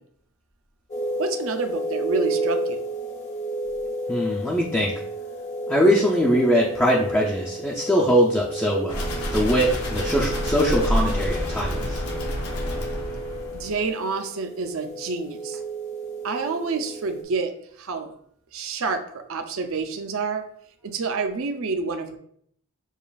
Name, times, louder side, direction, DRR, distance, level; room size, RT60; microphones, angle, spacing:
sound 1, 0.9-17.2, right 1 dB, 30° left, 0.7 m, -32 dB
voice 1, 1.2-2.8 13.5-15.6 16.2-18.1 18.5-20.4 20.8-22.2, right 4 dB, 60° right, 6 dB, 0.5 m, -28 dB
voice 2, 4.1-4.9 5.7-9.0 9.3-12.0, equal, 10° left, -4 dB, 0.4 m, -22 dB
sound 2, 8.9-13.9, equal, 85° left, 1.0 m, -28 dB
7.0 x 2.4 x 2.3 m, 0.65 s
head